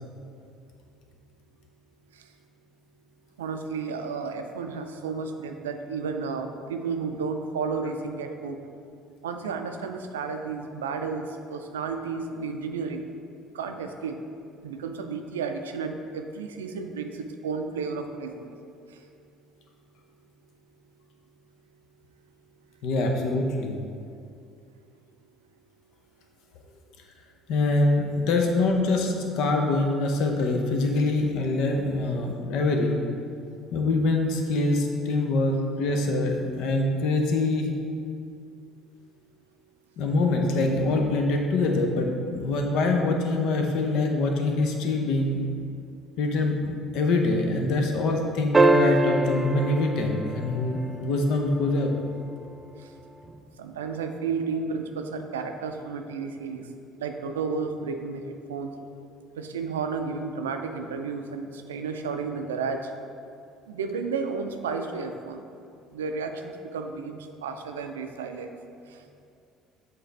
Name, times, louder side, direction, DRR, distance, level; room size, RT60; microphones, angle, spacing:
voice 1, 3.4-8.6 9.2-13.1 13.5-14.2 14.6-18.5 53.6-56.7 57.0-58.7 59.4-62.9 63.7-65.4 65.9-68.5, right 5 dB, 85° right, 6 dB, 0.4 m, -32 dB
voice 2, 22.8-23.7 27.5-33.0 33.7-37.7 40.0-45.4 46.2-51.9, left 2 dB, 65° left, 2 dB, 0.7 m, -24 dB
sound 1, 48.5-51.1 53.3-53.4, right 2 dB, 20° right, 0.4 m, -23 dB
7.7 x 3.9 x 3.3 m, 2.4 s
hypercardioid pair, 60°, 0 cm